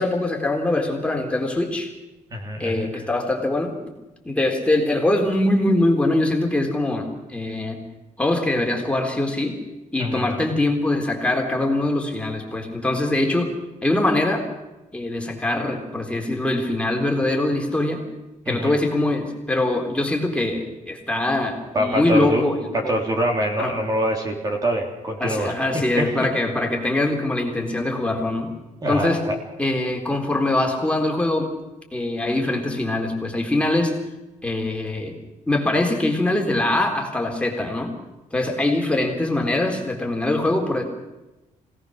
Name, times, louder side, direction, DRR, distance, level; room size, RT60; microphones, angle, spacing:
voice 1, 0.0-1.9 2.6-3.8 4.2-7.8 8.2-9.6 9.9-13.5 13.8-14.5 14.9-18.0 18.5-22.9 23.6-23.7 25.2-28.5 28.9-29.2 29.6-31.5 31.9-33.9 34.4-35.2 35.5-37.9 38.3-40.8, left 2 dB, 10° left, 1 dB, 3.7 m, -23 dB
voice 2, 2.3-2.9 10.0-10.4 18.5-18.8 21.7-25.5 26.0-26.1 28.8-29.3, equal, 30° right, 2 dB, 3.2 m, -25 dB
26.0 x 18.0 x 6.5 m, 1.0 s
cardioid pair, 130°, 13 cm